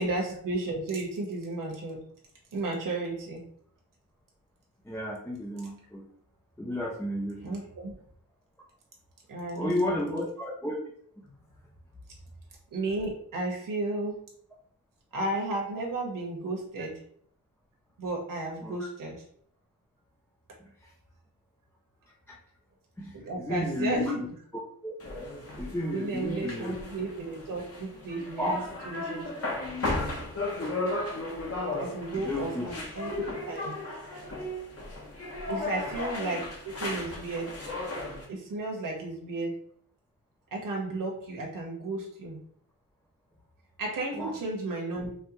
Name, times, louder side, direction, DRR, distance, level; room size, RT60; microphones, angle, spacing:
voice 1, 0.0-2.0 2.5-3.4 7.4-8.0 9.3-10.2 12.7-14.2 15.1-17.0 18.0-19.2 23.1-24.2 25.9-28.6 28.8-29.3 31.8-33.8 35.5-37.5 38.3-39.6 40.5-42.4 43.8-45.1, right 2 dB, 60° right, -1 dB, 1.4 m, -33 dB
voice 2, 4.8-6.1 6.6-7.7 9.5-10.8 18.6-18.8 20.6-20.9 22.3-22.4 23.0-24.3 24.8-24.9 25.6-26.8 28.4-28.6 32.1-32.7 33.0-33.1 35.5-35.7 44.1-44.3, left 1 dB, 5° left, -2 dB, 0.5 m, -33 dB
sound 1, 25.0-38.2, left 2 dB, 40° left, 1.1 m, -35 dB
4.6 x 3.2 x 3.0 m, 0.63 s
wide cardioid pair, 135°, 37 cm